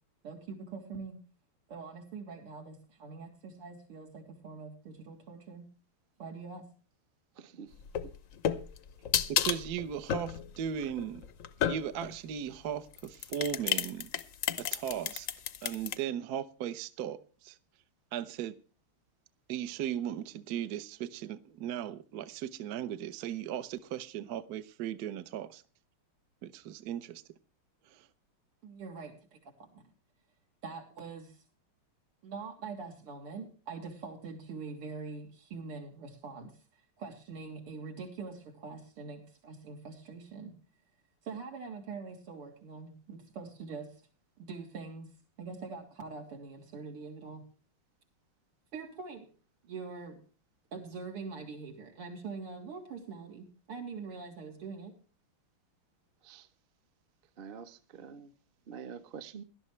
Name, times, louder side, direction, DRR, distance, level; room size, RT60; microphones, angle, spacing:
voice 1, 0.2-1.2 1.7-5.7 6.2-6.7 28.6-29.9 30.6-31.4 32.2-40.6 41.2-44.0 44.4-45.1 45.4-47.4 48.7-49.3 49.6-50.2 50.7-54.9, right 4 dB, 85° right, 4.1 m, -44 dB
voice 2, 7.4-7.7 56.2-56.5 57.4-58.3 58.7-59.4, right 7 dB, 45° right, 0.7 m, -46 dB
sound 1, 7.8-12.2 12.9-16.0, left 9 dB, 65° left, 0.8 m, -32 dB
voice 3, 9.3-11.2 11.7-14.1 14.6-15.3 15.6-17.6 18.1-18.6 19.5-25.6 26.4-27.2 27.9-28.1, right 9 dB, 60° right, 1.1 m, -37 dB
17.5 x 12.0 x 3.2 m
omnidirectional pair, 2.4 m